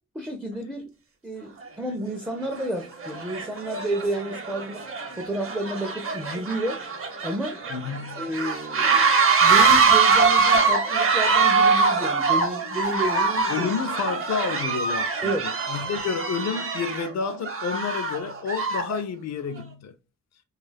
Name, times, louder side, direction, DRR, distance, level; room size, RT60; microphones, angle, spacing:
voice 1, 0.1-0.9 1.2-4.8 5.2-6.8 7.2-7.6 8.2-9.1 9.4-13.7 15.2-15.5, right 1 dB, 5° right, 0.4 m, -31 dB
sound 1, 1.6-1.7 2.4-2.7 3.0-19.0, right 5 dB, 45° right, 0.7 m, -23 dB
voice 2, 7.7-8.3 13.5-19.9, left 6 dB, 60° left, 0.4 m, -30 dB
2.3 x 2.3 x 3.2 m
wide cardioid pair, 105°, 30 cm